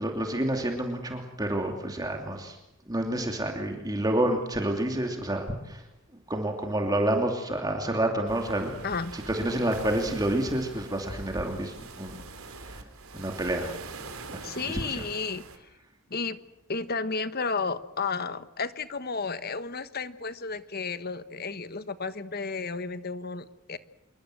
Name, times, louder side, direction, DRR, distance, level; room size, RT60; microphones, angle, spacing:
voice 1, 0.0-2.6 2.9-5.8 6.3-8.7 9.1-12.3 12.7-12.8 13.1-13.7 14.3-15.0, right 1 dB, 20° right, 3 dB, 2.8 m, -29 dB
sound 1, 8.3-15.6, right 3 dB, 80° right, 3.8 m, -43 dB
voice 2, 8.8-9.2 14.4-15.4 16.1-16.4 16.7-23.8, left 4 dB, 45° left, 12 dB, 1.4 m, -32 dB
27.0 x 23.0 x 7.8 m, 0.85 s
head